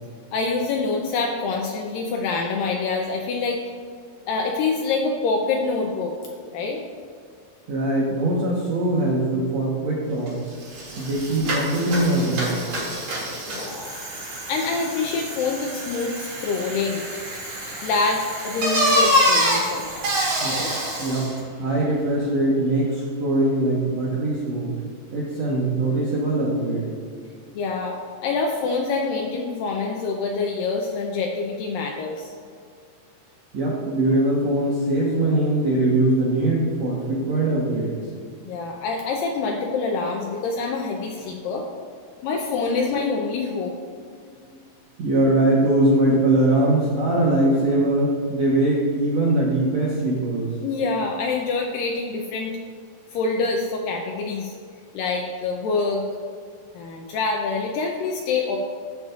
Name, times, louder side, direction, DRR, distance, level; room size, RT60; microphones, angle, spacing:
voice 1, 0.3-3.6 4.3-6.2 6.5-6.8 13.5-17.0 17.8-20.7 27.5-32.3 38.4-41.7 42.2-43.7 50.6-52.6 53.1-54.5 54.9-56.0 56.7-58.6, left 4 dB, 85° left, 1 dB, 2.0 m, -26 dB
voice 2, 7.7-10.5 11.0-12.6 20.4-20.6 21.0-24.7 25.1-26.9 33.5-37.9 45.0-50.5, right 1 dB, 75° right, -5 dB, 1.5 m, -22 dB
Bicycle, 10.3-10.4 10.6-21.4, equal, 50° right, 3.3 m, -26 dB
14.5 x 6.6 x 2.4 m, 2.2 s
omnidirectional pair, 4.8 m